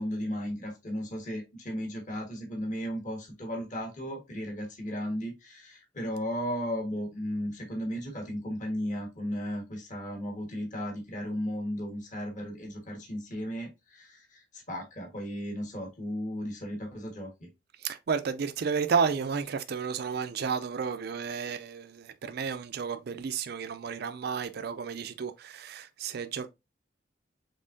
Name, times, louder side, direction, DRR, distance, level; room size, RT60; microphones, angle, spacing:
voice 1, 0.0-17.5, equal, 40° left, 1.5 m, -35 dB
voice 2, 17.8-26.5, right 6 dB, 55° right, 0.4 m, -32 dB
5.4 x 3.6 x 2.6 m
head